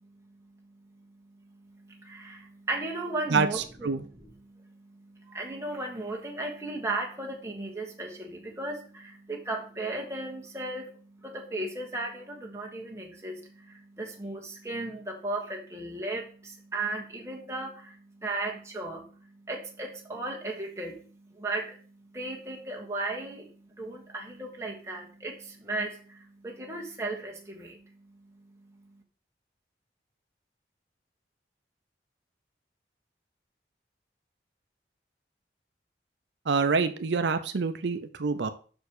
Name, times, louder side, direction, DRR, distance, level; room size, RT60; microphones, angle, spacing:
voice 1, 1.6-28.2, right 2 dB, 15° right, 0 dB, 1.5 m, -36 dB
voice 2, 3.3-4.0 36.5-38.5, right 5 dB, 80° right, 9 dB, 0.6 m, -27 dB
6.1 x 4.7 x 6.5 m, 0.40 s
head